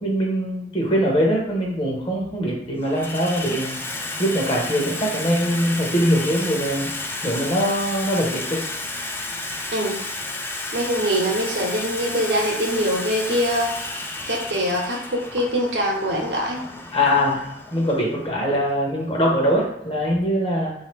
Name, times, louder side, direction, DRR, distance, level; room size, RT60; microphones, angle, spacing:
voice 1, 0.0-3.8 4.2-6.9 7.2-8.6 16.9-20.7, equal, 30° left, -2 dB, 1.0 m, -22 dB
Water tap faucet / Sink (filling or washing), 0.9-1.0 1.9-2.4 2.7-20.3, left 2 dB, 10° left, 0.3 m, -32 dB
voice 2, 10.7-13.8 14.3-16.6, equal, 70° right, -1 dB, 0.9 m, -23 dB
3.9 x 2.8 x 3.3 m, 0.81 s
head